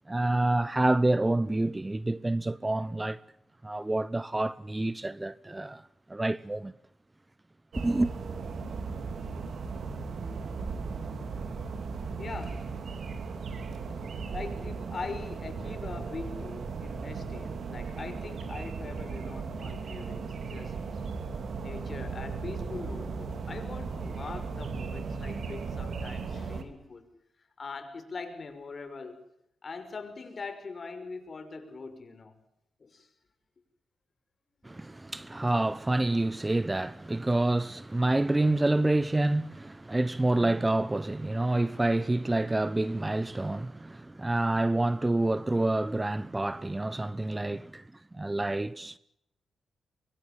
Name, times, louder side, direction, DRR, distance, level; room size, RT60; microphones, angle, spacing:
voice 1, 0.1-3.2 3.6-5.8 6.1-6.7 7.8-8.1 34.6-47.8 48.1-49.0, right 2 dB, 20° right, 0.9 m, -28 dB
sound 1, 7.7-26.6, right 5 dB, 65° right, 3.4 m, -37 dB
voice 2, 12.2-12.9 14.3-21.1 21.6-27.1 27.6-29.2 29.6-32.3 32.8-33.1, left 4 dB, 45° left, 5.7 m, -42 dB
23.5 x 23.5 x 7.5 m
cardioid pair, 65°, 0 cm